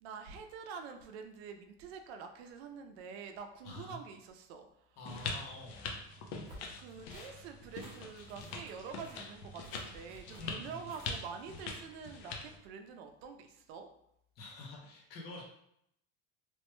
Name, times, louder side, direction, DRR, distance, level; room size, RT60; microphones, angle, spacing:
voice 1, 0.0-5.0 6.8-13.9, right 6 dB, 85° right, 6 dB, 0.5 m, -47 dB
voice 2, 3.6-4.0 5.0-5.9 10.3-10.9 14.4-15.4, left 2 dB, 30° left, -1 dB, 0.5 m, -47 dB
sound 1, 5.1-12.6, left 4 dB, 75° left, 0.6 m, -43 dB
sound 2, 6.5-11.4, right 1 dB, 20° right, 0.5 m, -57 dB
3.0 x 2.1 x 3.0 m, 0.75 s
cardioid pair, 165°, 31 cm